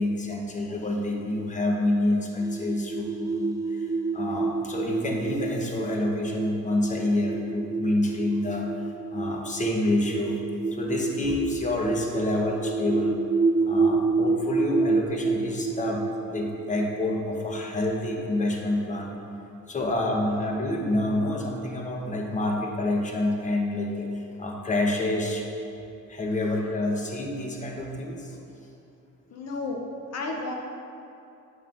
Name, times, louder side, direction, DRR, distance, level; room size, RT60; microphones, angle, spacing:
voice 1, 0.0-3.9 4.1-8.7 9.1-10.4 10.7-13.1 13.7-19.2 19.7-25.4 26.1-28.4, left 1 dB, 25° left, 0 dB, 0.9 m, -28 dB
sound 1, 2.4-18.7, right 3 dB, 10° right, 0.5 m, -29 dB
voice 2, 29.3-30.5, left 2 dB, 60° left, 1 dB, 0.8 m, -32 dB
9.4 x 5.4 x 2.5 m, 2.8 s
cardioid pair, 90°, 30 cm